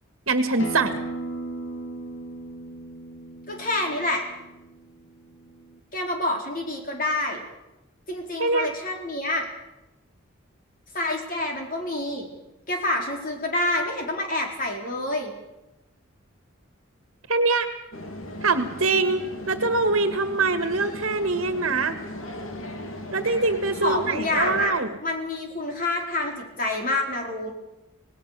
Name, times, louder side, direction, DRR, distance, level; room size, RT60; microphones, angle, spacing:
voice 1, 0.3-1.0 8.4-8.7 17.3-17.7 18.4-21.9 23.1-24.9, right 3 dB, 70° right, 9 dB, 1.7 m, -23 dB
Acoustic guitar, 0.6-5.8, right 2 dB, 60° left, 2.3 m, -37 dB
voice 2, 3.5-4.2 5.9-7.4 8.1-9.5 10.9-12.3 12.7-15.3 23.8-24.8 25.0-27.5, left 2 dB, 40° left, 2 dB, 4.6 m, -27 dB
sound 1, 17.9-24.7, left 1 dB, 75° left, 2.9 m, -36 dB
26.0 x 18.5 x 6.8 m, 0.95 s
head